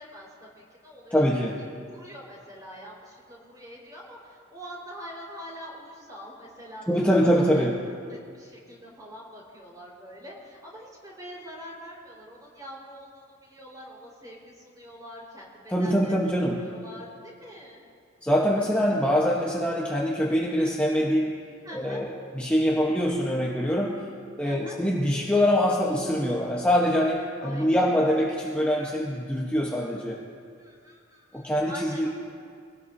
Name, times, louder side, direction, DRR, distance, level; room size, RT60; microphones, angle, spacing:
voice 1, 0.0-1.2 1.9-7.0 7.3-7.6 8.1-16.2 16.6-17.8 21.6-22.1 24.4-24.8 27.4-28.0 30.6-32.1, equal, 20° right, -4 dB, 4.4 m, -44 dB
voice 2, 1.1-1.6 6.9-7.8 15.7-16.6 18.2-21.4 21.7-24.0 24.4-30.2 31.3-32.1, equal, 5° left, -4 dB, 1.1 m, -24 dB
24.5 x 18.0 x 2.8 m, 2.2 s
head